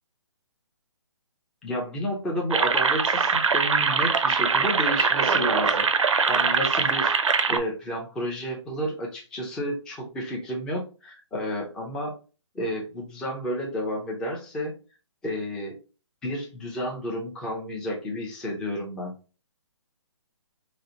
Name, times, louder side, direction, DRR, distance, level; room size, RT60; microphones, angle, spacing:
voice 1, 1.6-5.9 6.3-7.2 7.5-12.1 12.5-14.7 15.2-15.8 16.2-19.1, equal, 5° left, -1 dB, 0.4 m, -31 dB
sound 1, 2.5-7.6, right 5 dB, 80° right, 0.5 m, -22 dB
3.9 x 2.0 x 2.7 m, 0.33 s
figure-of-eight pair, 145°, 16 cm